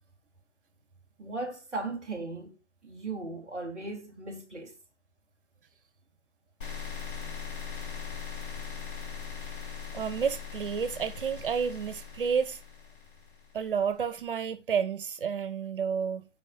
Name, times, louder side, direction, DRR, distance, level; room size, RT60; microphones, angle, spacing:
voice 1, 1.2-2.6 2.8-4.8, right 3 dB, ahead, 0.6 m, -37 dB
sound 1, 6.6-13.7, left 7 dB, 45° left, 2.3 m, -40 dB
voice 2, 9.9-12.6 13.5-16.2, right 6 dB, 50° right, 1.0 m, -30 dB
5.5 x 5.1 x 5.7 m
figure-of-eight pair, 140°, 35 cm